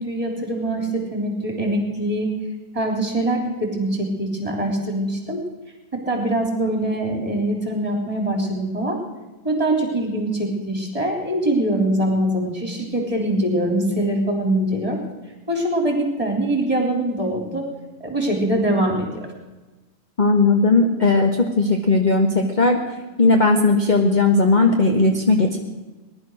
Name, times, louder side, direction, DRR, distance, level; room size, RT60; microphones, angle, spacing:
voice 1, 0.0-2.3 2.7-5.4 5.9-9.0 9.4-15.0 15.5-17.7 18.0-19.3, right 1 dB, 20° right, 2 dB, 3.6 m, -23 dB
voice 2, 20.2-22.8 23.2-25.6, left 3 dB, 30° left, 3 dB, 1.2 m, -17 dB
19.5 x 11.5 x 6.3 m, 1.2 s
omnidirectional pair, 1.7 m